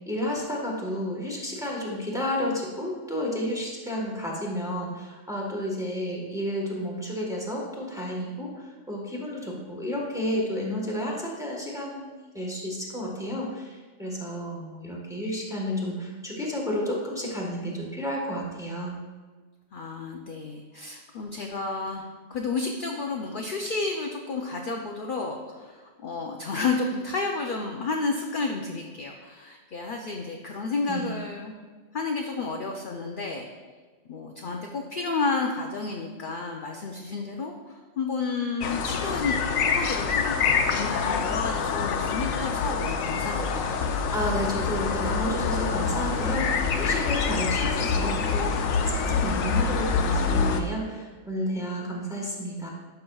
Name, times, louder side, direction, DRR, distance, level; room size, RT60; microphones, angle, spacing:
voice 1, 0.1-19.0 30.9-31.2 44.1-52.7, equal, 5° right, -3 dB, 1.2 m, -31 dB
voice 2, 19.7-31.5 31.9-33.5 34.1-39.3 39.6-43.6, left 4 dB, 55° left, 1 dB, 0.6 m, -31 dB
sound 1, 38.6-50.6, left 5 dB, 90° left, 1.0 m, -26 dB
11.5 x 5.7 x 2.3 m, 1.4 s
omnidirectional pair, 1.4 m